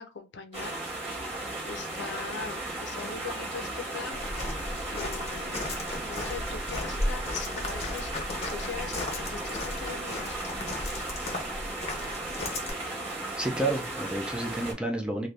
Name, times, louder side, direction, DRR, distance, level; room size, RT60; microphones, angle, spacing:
voice 1, 0.0-1.3 1.6-4.6 4.9-5.7 6.0-10.4, left 5 dB, 65° left, 0.5 m, -41 dB
sound 1, 0.5-14.7, right 2 dB, 35° right, 1.3 m, -36 dB
Walk footsteps, 4.1-12.7, left 2 dB, 35° left, 0.8 m, -35 dB
voice 2, 13.4-15.3, right 2 dB, 5° right, 0.4 m, -30 dB
2.6 x 2.6 x 3.2 m
head